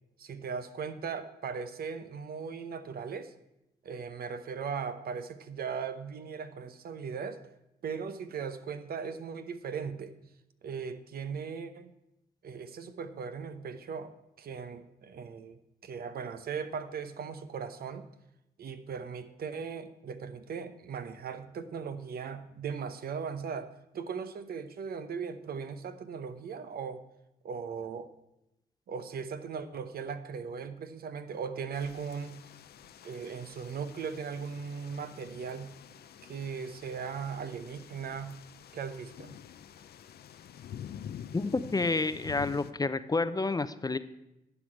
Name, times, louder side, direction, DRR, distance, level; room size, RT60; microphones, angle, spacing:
voice 1, 0.2-3.3 3.8-7.4 7.8-10.1 10.6-11.9 12.4-18.1 18.6-27.0 27.4-28.1 28.9-32.4 33.0-35.7 36.2-38.4 38.7-39.3, right 6 dB, 70° right, 10 dB, 0.8 m, -38 dB
sound 1, 31.7-42.7, left 9 dB, 70° left, 0.6 m, -48 dB
voice 2, 41.3-44.0, left 3 dB, 25° left, 13 dB, 0.6 m, -29 dB
11.5 x 5.0 x 8.6 m, 0.87 s
cardioid pair, 70°, 17 cm